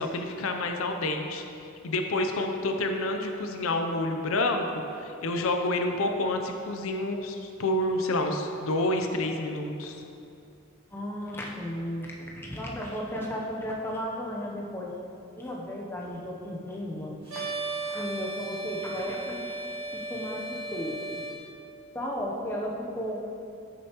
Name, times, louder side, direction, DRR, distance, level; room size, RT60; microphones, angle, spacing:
voice 1, 0.0-1.4 1.8-4.6 5.0-10.0, left 2 dB, 75° left, 4 dB, 0.6 m, -28 dB
voice 2, 10.9-14.9 15.4-17.5 17.9-21.2 21.9-23.2, equal, 10° left, -3 dB, 0.7 m, -35 dB
sound 1, 17.3-21.3, right 2 dB, 75° right, 1.7 m, -35 dB
8.6 x 6.6 x 3.0 m, 2.6 s
head